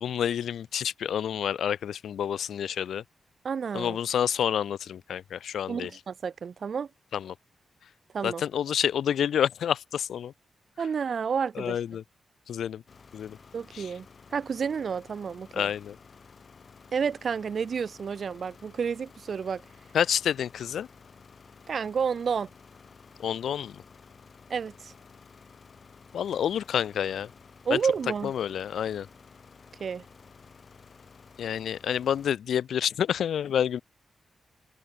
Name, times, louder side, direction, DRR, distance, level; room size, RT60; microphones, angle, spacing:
voice 1, 0.0-3.0 3.7-5.9 7.1-7.3 8.2-10.3 11.6-12.0 12.5-12.8 13.1-13.4 13.7-13.9 15.5-16.0 19.9-20.9 23.2-23.8 26.1-27.3 27.7-27.8 28.2-29.1 31.4-33.8, left 9 dB, 90° left, 0.5 m, -28 dB
voice 2, 3.4-4.0 5.7-6.9 8.1-8.4 10.8-11.8 13.5-14.1 14.3-15.7 16.9-19.6 21.7-22.5 24.5-24.9 27.7-28.3 29.8-30.0, right 6 dB, 45° right, 0.6 m, -30 dB
sound 1, 12.9-32.3, left 5 dB, 40° left, 6.0 m, -53 dB
open air
wide cardioid pair, 175°, 0 cm